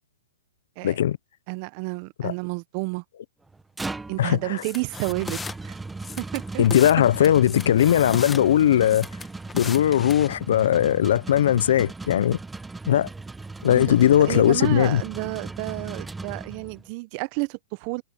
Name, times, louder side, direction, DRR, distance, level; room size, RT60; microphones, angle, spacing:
voice 1, 0.8-1.2 2.2-2.3 4.2-4.6 6.6-9.1 9.5-12.4 12.9-13.1 13.6-15.0, left 11 dB, 65° left, 1.1 m, -19 dB
voice 2, 1.5-3.0 4.1-5.8 6.2-6.6 13.6-18.0, right 26 dB, 40° right, 1.1 m, -31 dB
sound 1, 3.5-16.9, right 3 dB, 5° right, 1.3 m, -38 dB
sound 2, 4.6-5.5 6.0-7.0 7.2-8.4 8.9-10.3, left 5 dB, 10° left, 2.2 m, -36 dB
hypercardioid pair, 130°, 0 cm